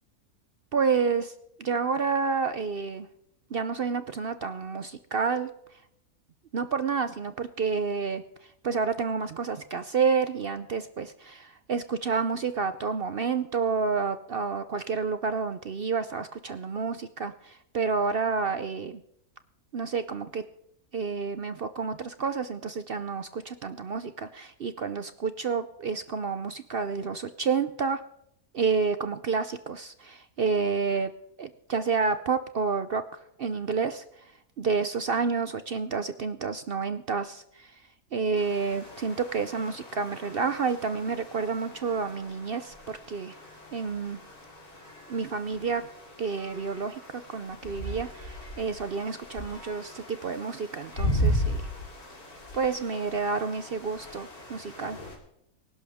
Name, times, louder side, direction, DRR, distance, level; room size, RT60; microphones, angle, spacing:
voice 1, 0.7-1.3 1.6-3.1 3.5-5.5 6.5-8.2 8.6-19.0 19.7-20.4 20.9-28.0 28.5-31.1 31.4-33.0 33.4-34.0 34.6-37.7 38.1-43.4 43.7-44.2 45.1-45.9 46.2-47.0 47.3-51.6 52.5-55.0, right 5 dB, 55° right, 11 dB, 0.6 m, -29 dB
sound 1, 38.4-55.2, equal, 75° left, 3.8 m, -36 dB
24.5 x 11.5 x 3.5 m, 0.77 s
omnidirectional pair, 1.6 m